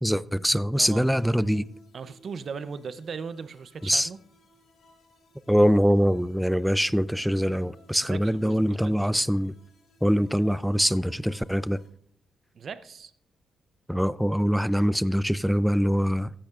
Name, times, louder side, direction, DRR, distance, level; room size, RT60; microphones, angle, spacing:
voice 1, 0.0-1.7 3.8-4.1 5.5-9.5 10.0-11.8 13.9-16.3, equal, ahead, 0.3 m, -23 dB
voice 2, 0.8-1.1 1.9-4.2 8.1-9.0 12.5-13.1, right 5 dB, 55° right, 0.6 m, -38 dB
sound 1, 1.0-11.9, equal, 70° left, 3.7 m, -58 dB
15.5 x 10.0 x 2.4 m
cardioid pair, 100°, 0 cm